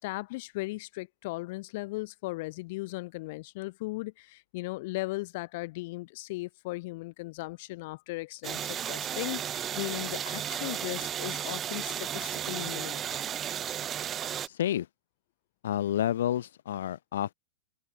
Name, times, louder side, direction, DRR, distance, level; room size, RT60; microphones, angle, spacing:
voice 1, 0.0-13.1, left 22 dB, 45° left, 4.2 m, -37 dB
sound 1, 8.4-14.5, right 9 dB, 20° right, 3.8 m, -34 dB
voice 2, 15.6-17.3, left 11 dB, 70° left, 6.0 m, -29 dB
supercardioid pair, 170°, 0 cm